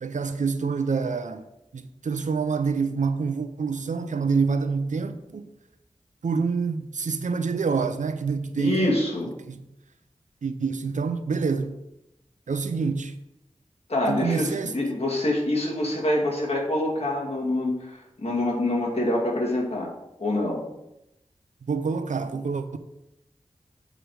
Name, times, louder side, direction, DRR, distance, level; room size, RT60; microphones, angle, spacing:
voice 1, 0.0-1.5 1.7-5.5 6.2-8.9 9.4-9.7 10.4-11.8 12.5-13.1 14.1-14.7 21.6-22.8, right 5 dB, 90° right, 0.6 m, -27 dB
voice 2, 8.6-9.3 13.9-19.9 20.2-20.6, left 1 dB, 55° left, 2.4 m, -25 dB
7.6 x 5.0 x 4.8 m
wide cardioid pair, 80°, 12 cm